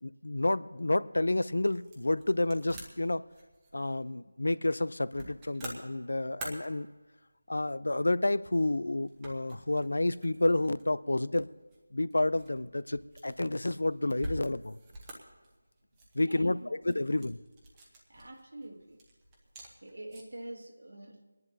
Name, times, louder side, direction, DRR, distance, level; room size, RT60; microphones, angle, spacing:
voice 1, 0.0-3.2 3.7-6.9 7.5-11.5 11.9-14.8 16.1-17.4, left 2 dB, 80° left, 0.5 m, -30 dB
sound 1, 1.1-20.5, right 1 dB, 10° right, 1.0 m, -49 dB
voice 2, 16.2-17.0 18.1-19.0 19.8-21.2, right 1 dB, 85° right, 1.9 m, -45 dB
27.0 x 10.5 x 2.8 m
figure-of-eight pair, 175°, 0 cm